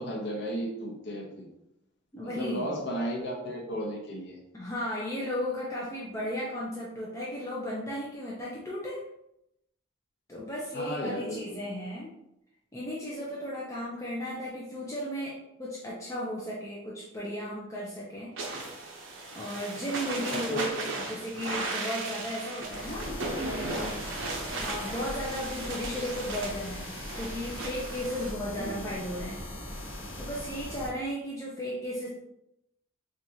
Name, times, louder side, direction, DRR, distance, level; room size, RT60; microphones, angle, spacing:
voice 1, 0.0-1.5 2.2-4.4 10.7-11.6 20.3-20.7 28.5-29.0, equal, 60° left, -2 dB, 0.7 m, -34 dB
voice 2, 2.1-2.7 4.5-9.0 10.3-12.1 12.7-18.3 19.3-24.0 24.5-26.9 27.1-29.4 30.2-32.1, equal, 15° left, -5 dB, 0.5 m, -35 dB
sound 1, 18.4-28.3, right 2 dB, 75° right, 0.7 m, -36 dB
sound 2, 22.6-30.9, left 1 dB, 80° left, 1.0 m, -40 dB
4.3 x 2.5 x 2.7 m, 0.83 s
head